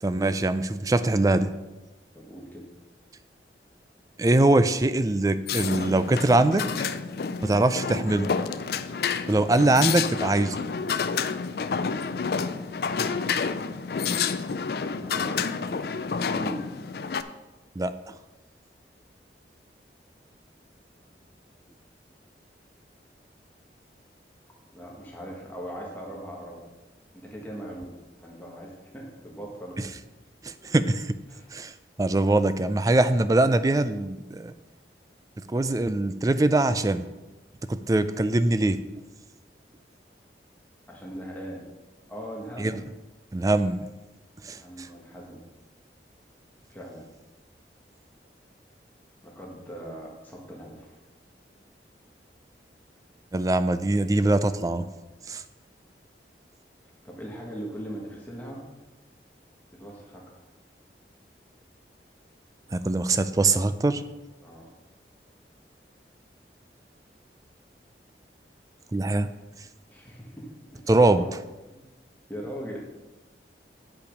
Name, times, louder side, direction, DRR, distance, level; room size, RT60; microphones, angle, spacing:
voice 1, 0.0-1.5 4.2-6.7 7.4-8.3 9.3-10.6 17.8-17.9 30.4-31.2 31.5-31.7 32.0-34.5 35.5-37.1 37.7-38.8 42.6-42.8 43.3-43.9 44.4-44.9 53.3-54.9 55.3-55.4 62.7-64.0 68.9-69.3 70.9-71.3, right 2 dB, 20° right, 12 dB, 0.3 m, -22 dB
voice 2, 2.1-2.7 14.5-16.6 21.0-21.2 24.7-26.6 27.1-29.8 31.3-31.5 40.9-41.6 42.1-42.8 44.5-45.4 46.7-47.1 49.2-50.9 57.0-58.6 59.7-60.2 64.4-64.7 69.9-71.3 71.7-71.8 72.3-72.8, right 1 dB, 10° left, -3 dB, 1.4 m, -40 dB
sound 1, 5.5-17.2, left 5 dB, 60° left, 0.4 m, -29 dB
8.5 x 5.5 x 5.2 m, 1.1 s
head